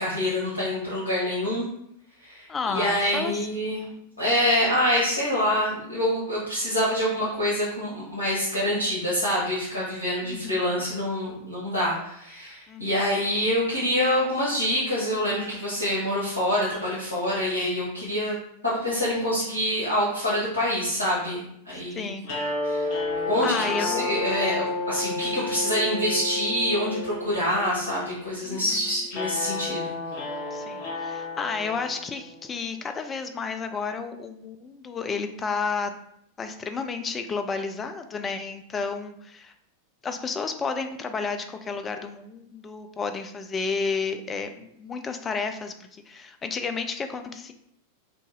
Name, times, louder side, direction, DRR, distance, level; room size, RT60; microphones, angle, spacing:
voice 1, 0.0-1.7 2.2-3.9 4.2-18.4 18.6-21.4 21.7-22.1 22.6-22.9 23.2-29.9, equal, 90° right, -9 dB, 1.0 m, -26 dB
voice 2, 2.5-3.3 10.2-10.8 12.7-13.2 21.9-22.3 23.4-24.2 28.4-28.8 30.5-35.9 36.4-39.5 40.0-47.5, left 5 dB, 20° left, 7 dB, 0.3 m, -32 dB
sound 1, 22.2-32.5, left 3 dB, 45° left, 0.8 m, -31 dB
2.8 x 2.5 x 3.8 m, 0.74 s
figure-of-eight pair, 90°, 0 cm